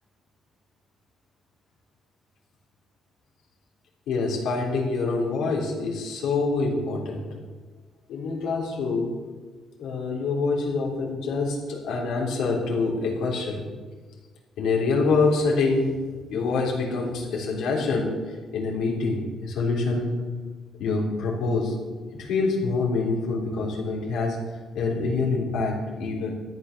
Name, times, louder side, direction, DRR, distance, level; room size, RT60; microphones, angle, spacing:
voice 1, 4.1-7.2 8.1-9.1 9.8-13.6 14.6-15.9 16.3-20.1 20.8-21.8 22.2-24.4 24.8-26.4, left 3 dB, 85° left, -2 dB, 3.6 m, -26 dB
13.5 x 9.0 x 6.8 m, 1.4 s
cardioid pair, 90°, 0 cm